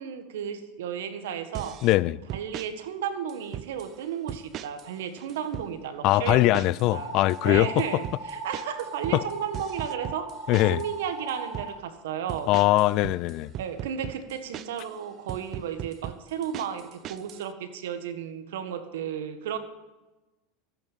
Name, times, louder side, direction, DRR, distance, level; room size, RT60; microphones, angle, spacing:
voice 1, 0.0-1.8 2.3-6.7 6.9-7.1 7.4-10.3 10.6-12.5 13.6-19.6, right 8 dB, 80° right, 1.6 m, -33 dB
sound 1, 1.5-2.0 2.3-2.7 3.3-3.9 4.3-4.9 5.2-5.7 6.3-6.9 7.2-10.9 11.3-11.7 12.3-14.9 15.3-17.4, right 12 dB, 45° right, 0.6 m, -38 dB
voice 2, 1.8-2.2 6.0-7.7 9.1-9.2 10.5-10.8 12.5-13.5, left 17 dB, 55° left, 0.5 m, -21 dB
sound 2, 6.9-11.7, right 3 dB, 25° right, 5.4 m, -38 dB
14.0 x 9.0 x 7.4 m
supercardioid pair, 110°, 0 cm